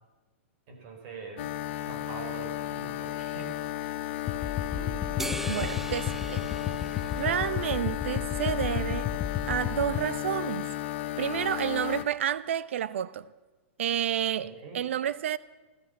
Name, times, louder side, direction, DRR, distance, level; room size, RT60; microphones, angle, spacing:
voice 1, 0.7-1.5 1.9-3.7 14.4-14.8, right 4 dB, 50° right, 5.3 m, -44 dB
sound 1, 1.4-12.1, left 14 dB, 60° left, 0.9 m, -34 dB
sound 2, 4.3-10.0, left 9 dB, 30° left, 0.8 m, -33 dB
voice 2, 4.8-6.5 7.2-9.1 9.5-10.7 11.2-13.3 13.8-15.4, right 10 dB, 75° right, 0.8 m, -30 dB
sound 3, 5.2-7.9, right 1 dB, 5° right, 0.6 m, -39 dB
15.0 x 13.0 x 7.1 m
hypercardioid pair, 125°, 7 cm